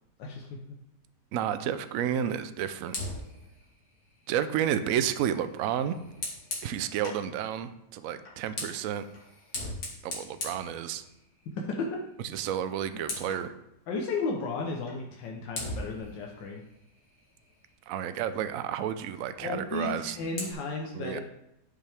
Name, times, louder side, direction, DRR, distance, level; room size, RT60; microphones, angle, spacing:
voice 1, 0.2-0.8 11.6-11.9 13.9-16.6 19.4-21.2, left 3 dB, 90° left, 0 dB, 1.6 m, -34 dB
voice 2, 1.3-3.0 4.3-6.0 6.6-9.0 10.0-11.0 12.3-13.5 17.9-20.2 20.9-21.2, right 9 dB, 70° right, 11 dB, 0.8 m, -31 dB
Fire, 2.9-7.3 8.2-11.5 11.8-12.1 12.4-13.5 14.9-15.0 15.5-17.9 19.7-20.5, left 2 dB, 60° left, 2.2 m, -41 dB
10.0 x 5.6 x 3.4 m, 0.85 s
omnidirectional pair, 1.9 m